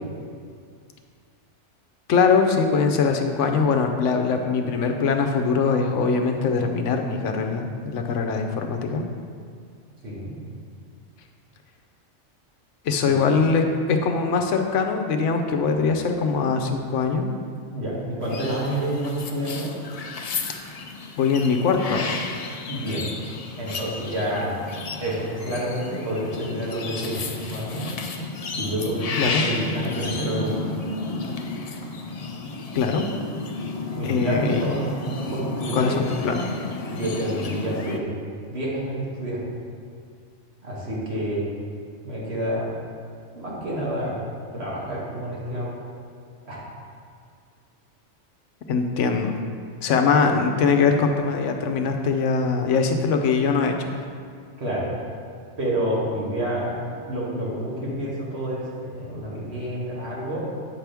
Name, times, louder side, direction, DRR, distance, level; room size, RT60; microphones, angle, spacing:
voice 1, 2.1-9.0 12.8-17.3 21.2-22.2 29.2-29.5 31.6-31.7 32.7-33.1 34.0-34.6 35.7-36.6 48.7-49.3 49.8-53.9, left 5 dB, 85° left, 5 dB, 1.0 m, -22 dB
voice 2, 17.7-19.7 22.7-23.1 23.6-24.5 25.0-27.9 28.6-30.7 34.0-36.0 36.9-38.1 38.5-39.4 40.6-41.5 42.0-42.7 43.3-44.2 44.5-45.7 46.5-46.6 54.6-54.9 55.6-60.4, right 1 dB, 60° right, -6 dB, 1.9 m, -28 dB
sound 1, 18.2-38.0, left 3 dB, 55° left, 0.4 m, -32 dB
8.4 x 5.9 x 3.4 m, 2.2 s
omnidirectional pair, 1.2 m